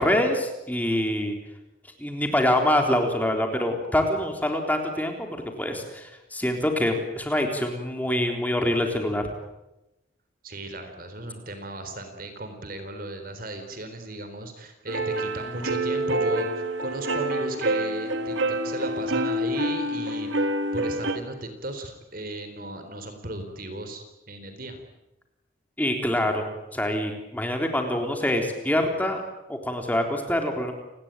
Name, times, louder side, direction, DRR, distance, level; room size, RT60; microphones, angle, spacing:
voice 1, 0.0-1.4 2.0-9.2 25.8-29.2 29.5-30.7, left 1 dB, 10° left, 3 dB, 3.6 m, -25 dB
voice 2, 10.4-20.5 20.7-24.8, right 1 dB, 45° right, 7 dB, 3.8 m, -36 dB
sound 1, 14.9-21.2, right 1 dB, 70° right, 2.5 m, -27 dB
30.0 x 19.5 x 9.1 m, 0.94 s
head